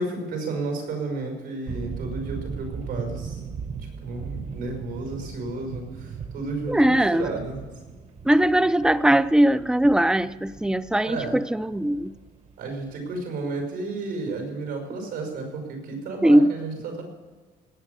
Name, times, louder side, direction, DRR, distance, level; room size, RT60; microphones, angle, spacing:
voice 1, 0.0-3.4 4.0-7.6 11.0-11.4 12.6-17.0, right 3 dB, 90° right, 3 dB, 5.7 m, -32 dB
sound 1, 1.7-13.2, right 6 dB, 40° right, 1.1 m, -38 dB
voice 2, 6.7-7.3 8.2-12.1 16.2-16.5, right 1 dB, 5° right, 15 dB, 0.4 m, -20 dB
18.5 x 8.7 x 6.8 m, 1.4 s
cardioid pair, 110°, 17 cm